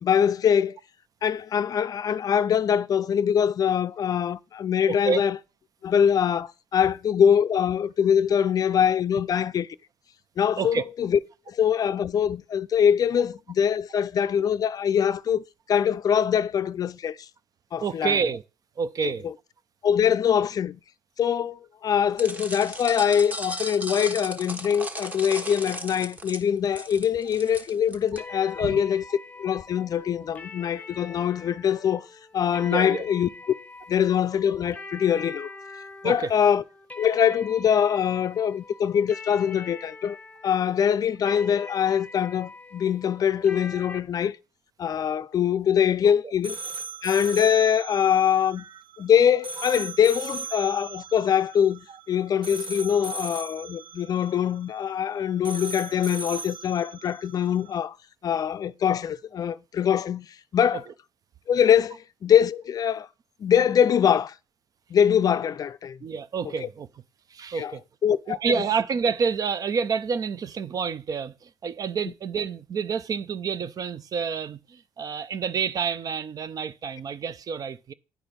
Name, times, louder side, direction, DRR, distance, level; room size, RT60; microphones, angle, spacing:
voice 1, 0.0-0.8 1.2-5.4 5.8-9.7 10.4-11.2 11.5-17.3 17.7-18.2 19.0-19.1 19.8-20.8 21.2-29.0 29.4-32.1 32.3-33.3 33.9-35.5 36.0-36.6 37.0-40.2 40.4-44.4 44.8-46.6 47.0-48.7 49.0-58.0 58.2-60.3 60.5-60.8 61.5-63.1 63.4-64.3 64.9-66.0 66.6-66.7 67.5-67.7 68.0-68.4, left 8 dB, 45° left, 0.4 m, -23 dB
voice 2, 4.9-5.2 6.8-6.9 8.4-8.5 10.6-10.8 17.8-18.4 18.8-19.3 28.6-28.8 32.7-33.1 36.0-36.3 46.0-46.3 47.9-48.0 48.4-48.8 49.6-49.7 51.9-52.0 60.7-60.9 66.0-66.9 67.3-67.8 68.3-77.9, right 6 dB, 45° right, 0.5 m, -29 dB
sound 1, 22.2-28.2, right 1 dB, 20° right, 1.2 m, -36 dB
sound 2, 28.2-44.0, left 3 dB, 15° left, 0.8 m, -43 dB
sound 3, 46.4-57.8, right 4 dB, 70° right, 1.4 m, -38 dB
9.8 x 4.4 x 5.2 m
cardioid pair, 90°, 9 cm